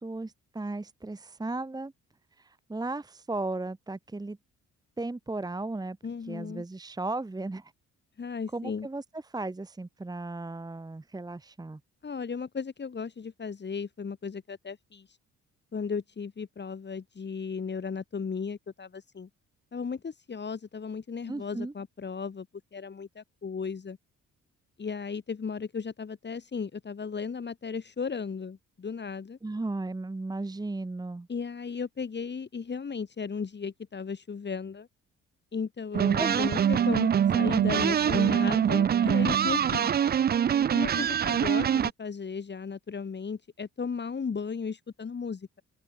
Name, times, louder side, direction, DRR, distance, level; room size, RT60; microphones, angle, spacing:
voice 1, 0.0-1.9 2.4-4.4 5.0-6.0 6.3-7.7 8.5-11.8 21.3-21.7 29.4-31.3 36.1-36.4, right 2 dB, 15° right, 1.2 m, -35 dB
voice 2, 6.0-6.6 8.2-8.9 12.0-15.1 15.7-19.3 19.7-22.5 22.7-24.0 24.8-29.4 31.3-34.9 35.5-39.9 40.7-45.6, left 5 dB, 35° left, 3.4 m, -35 dB
sound 1, 35.9-41.9, right 9 dB, 35° right, 0.4 m, -24 dB
open air
cardioid pair, 90°, 30 cm